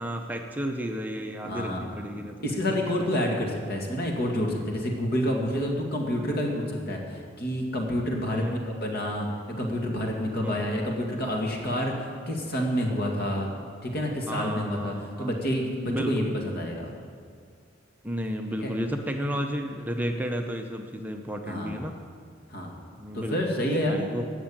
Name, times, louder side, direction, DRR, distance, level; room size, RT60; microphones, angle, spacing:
voice 1, 0.0-2.4 2.7-3.3 8.3-8.6 10.4-10.7 14.3-15.3 15.9-16.3 18.0-21.9 23.0-23.4 23.9-24.2, equal, 10° right, 3 dB, 0.7 m, -32 dB
voice 2, 1.4-1.8 2.4-9.3 9.6-11.9 12.3-13.5 13.8-16.9 18.6-18.7 21.5-21.9 22.5-22.7 23.1-24.0, equal, 55° left, 0 dB, 2.2 m, -28 dB
15.5 x 6.2 x 8.9 m, 2.1 s
head